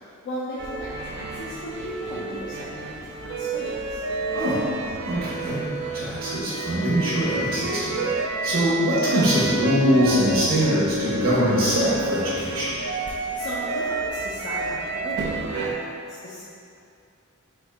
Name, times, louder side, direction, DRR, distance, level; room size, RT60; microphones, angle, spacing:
voice 1, 0.0-4.0 13.4-16.4, left 1 dB, 55° left, -8 dB, 0.5 m, -36 dB
sound 1, 0.6-15.7, right 3 dB, 55° right, 0.3 m, -30 dB
voice 2, 4.3-4.7 5.0-5.6 5.9-12.7, equal, 75° right, -9 dB, 0.9 m, -23 dB
4.3 x 3.6 x 2.2 m, 2.5 s
head